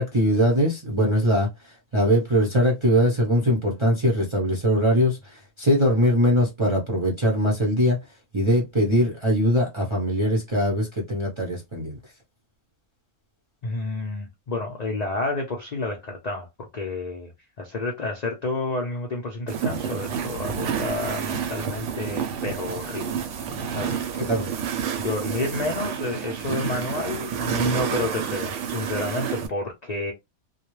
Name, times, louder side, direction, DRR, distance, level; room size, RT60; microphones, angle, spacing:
voice 1, 0.0-8.0 8.3-12.0 24.2-24.5, equal, 35° right, 0.4 m, -22 dB
voice 2, 13.6-17.3 17.6-23.2 23.7-24.2 25.0-30.1, left 2 dB, 70° left, 0.3 m, -30 dB
sound 1, 19.5-29.5, right 7 dB, 65° right, 0.8 m, -29 dB
2.3 x 2.1 x 3.0 m
omnidirectional pair, 1.5 m